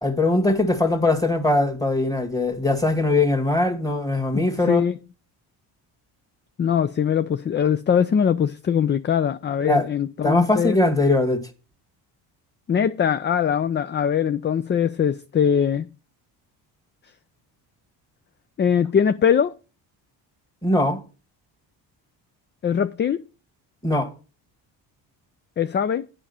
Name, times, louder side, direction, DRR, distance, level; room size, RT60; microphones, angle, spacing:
voice 1, 0.0-4.8 9.6-9.9 10.2-11.4 20.6-21.0 23.8-24.1, left 2 dB, 10° left, 1.9 m, -21 dB
voice 2, 4.3-5.0 6.6-10.8 12.7-15.9 18.6-19.5 22.6-23.2 25.6-26.1, left 8 dB, 25° left, 0.4 m, -21 dB
9.0 x 5.0 x 7.0 m
supercardioid pair, 75°, 46 cm